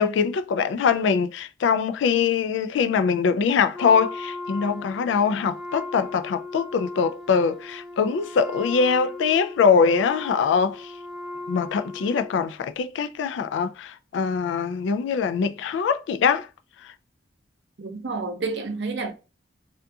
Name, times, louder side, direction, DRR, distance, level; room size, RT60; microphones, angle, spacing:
voice 1, 0.0-10.9 11.5-16.5, left 6 dB, 85° left, 0.3 m, -23 dB
Wind instrument woodwind instrument, 3.7-12.5, left 2 dB, ahead, 0.6 m, -38 dB
voice 2, 17.8-19.1, right 3 dB, 70° right, 0.5 m, -29 dB
2.5 x 2.3 x 2.6 m
head